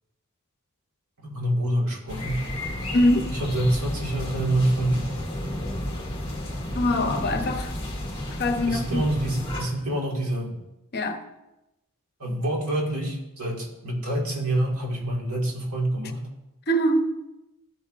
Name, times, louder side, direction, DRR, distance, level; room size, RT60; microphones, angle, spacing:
voice 1, 1.2-2.4 3.3-5.2 8.7-10.6 12.2-16.2, right 1 dB, 80° right, 1.9 m, -26 dB
sound 1, 2.1-9.6, left 1 dB, 25° left, 1.9 m, -32 dB
voice 2, 2.9-3.3 6.7-7.7 8.4-9.1 10.9-11.2 16.7-17.2, left 1 dB, 45° left, 0.8 m, -23 dB
14.0 x 7.1 x 2.5 m
head